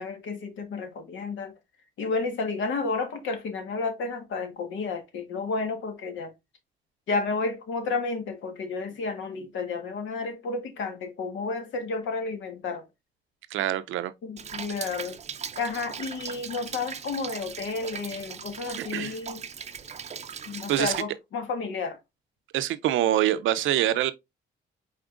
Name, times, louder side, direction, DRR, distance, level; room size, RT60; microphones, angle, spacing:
voice 1, 0.0-1.5 2.0-6.3 7.1-12.9 14.2-15.2 15.6-19.5 20.5-22.0, left 4 dB, 75° left, 1.5 m, -31 dB
voice 2, 13.5-14.1 18.9-19.2 20.7-20.9 22.5-24.1, right 13 dB, 80° right, 0.6 m, -25 dB
Rain, 14.4-21.0, right 7 dB, 35° right, 0.5 m, -39 dB
4.9 x 4.3 x 2.5 m
cardioid pair, 90°, 20 cm